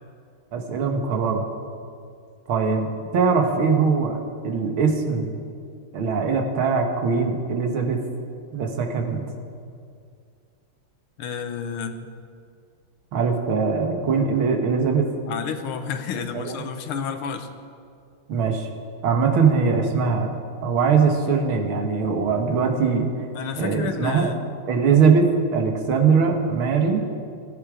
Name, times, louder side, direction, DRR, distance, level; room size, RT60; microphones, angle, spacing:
voice 1, 0.5-1.5 2.5-2.9 3.1-5.4 5.9-8.0 8.5-9.2 13.1-15.1 16.3-16.6 18.3-18.7 19.0-20.3 20.6-23.1 23.6-24.3 24.7-27.0, right 5 dB, 75° right, 3 dB, 2.3 m, -21 dB
voice 2, 11.2-12.1 15.3-17.5 23.4-24.4, left 6 dB, 85° left, 8 dB, 1.9 m, -30 dB
16.5 x 14.5 x 5.0 m, 2.3 s
omnidirectional pair, 2.3 m